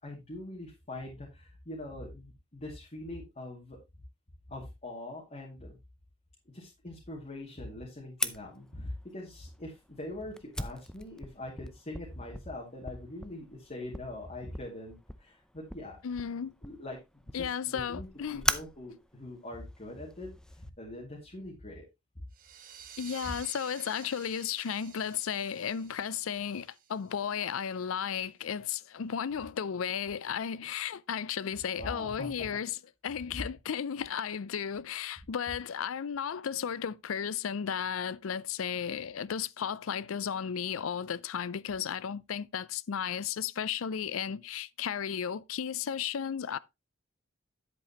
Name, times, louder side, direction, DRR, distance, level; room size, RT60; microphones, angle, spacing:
voice 1, 0.0-3.8 4.5-5.8 6.5-16.0 16.6-17.0 17.3-21.9 23.2-23.3 31.8-32.5, left 1 dB, 35° left, 2.4 m, -43 dB
Fire, 8.2-20.7, left 1 dB, 5° left, 0.5 m, -40 dB
voice 2, 16.0-16.5 17.3-18.4 23.0-32.8 33.0-46.6, left 7 dB, 75° left, 0.5 m, -34 dB
sound 1, 22.3-27.6, right 9 dB, 45° right, 1.0 m, -51 dB
9.9 x 8.3 x 3.0 m
head